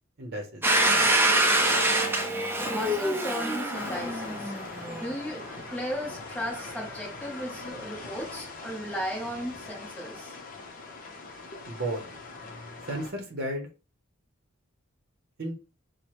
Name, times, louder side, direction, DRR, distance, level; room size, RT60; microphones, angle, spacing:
voice 1, 0.2-0.6 11.7-12.0 12.9-13.7 15.4-15.5, right 1 dB, 50° right, 0.8 m, -33 dB
Domestic sounds home sounds, 0.6-5.3, right 1 dB, 10° right, 0.5 m, -25 dB
voice 2, 2.7-4.5 4.9-10.4, equal, 5° left, 1.0 m, -36 dB
sound 1, 3.7-13.1, left 3 dB, 40° left, 0.7 m, -42 dB
4.5 x 2.1 x 3.0 m
head